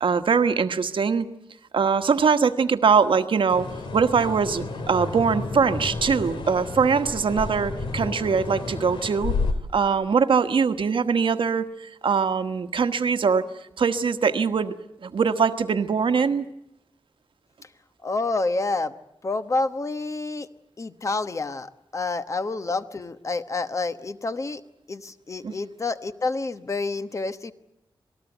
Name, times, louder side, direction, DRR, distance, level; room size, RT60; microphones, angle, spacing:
voice 1, 0.0-1.3 1.7-3.7 3.9-9.4 9.7-13.4 13.8-14.7 15.0-16.5 25.4-25.5, right 5 dB, 80° right, 9 dB, 1.3 m, -22 dB
sound 1, 3.5-9.5, left 3 dB, 85° left, 2.4 m, -31 dB
voice 2, 18.0-19.0 19.2-20.5 20.8-24.6 24.9-27.5, left 3 dB, 40° left, 11 dB, 1.1 m, -28 dB
27.0 x 19.0 x 8.1 m, 0.82 s
wide cardioid pair, 140°, 8 cm